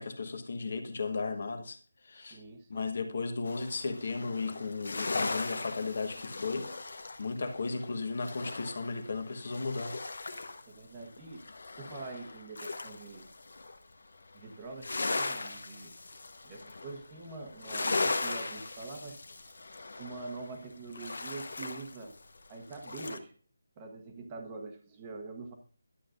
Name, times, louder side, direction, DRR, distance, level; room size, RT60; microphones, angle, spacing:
voice 1, 0.0-1.8 2.0-2.4 2.7-10.0, left 4 dB, 40° left, 1.2 m, -35 dB
voice 2, 2.1-2.9 10.7-11.4 11.8-13.3 14.3-16.0 16.4-19.5 20.0-22.1 22.5-23.3 23.8-25.5, right 3 dB, 15° right, 1.1 m, -45 dB
sound 1, 3.5-10.7 11.0-13.8 14.1-23.2, left 3 dB, 60° left, 1.1 m, -38 dB
11.5 x 8.1 x 2.5 m
figure-of-eight pair, 175°, 0 cm